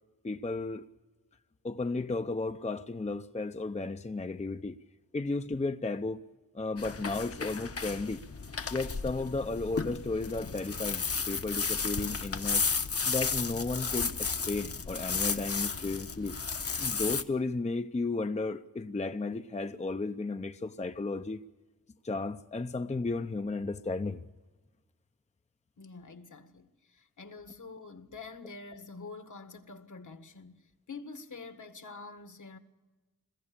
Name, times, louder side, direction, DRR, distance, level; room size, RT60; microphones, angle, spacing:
voice 1, 0.2-0.9 1.6-4.8 5.1-6.2 6.5-8.2 8.7-12.7 13.0-16.4 16.8-21.4 22.0-24.2, left 3 dB, 20° left, 0.6 m, -34 dB
sound 1, 6.8-17.2, left 5 dB, 45° left, 1.0 m, -33 dB
voice 2, 25.8-32.6, left 4 dB, 65° left, 1.7 m, -47 dB
22.0 x 15.5 x 8.6 m
wide cardioid pair, 85°, 33 cm